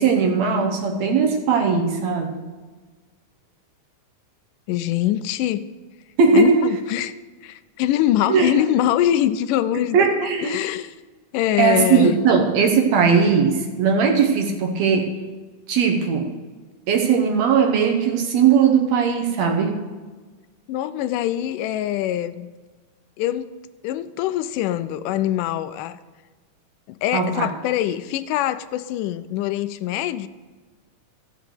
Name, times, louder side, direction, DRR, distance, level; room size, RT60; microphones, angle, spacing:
voice 1, 0.0-2.5 6.2-6.7 8.3-8.5 9.9-10.6 11.6-15.2 15.7-16.3 16.9-19.8 27.1-27.5, right 6 dB, 65° right, 4 dB, 2.0 m, -19 dB
voice 2, 4.7-5.7 6.3-7.1 7.4-11.0 11.3-12.2 20.7-22.5 23.2-23.5 23.8-26.0 26.9-30.3, left 12 dB, 85° left, 13 dB, 2.1 m, -23 dB
14.5 x 6.2 x 6.8 m, 1.3 s
omnidirectional pair, 3.7 m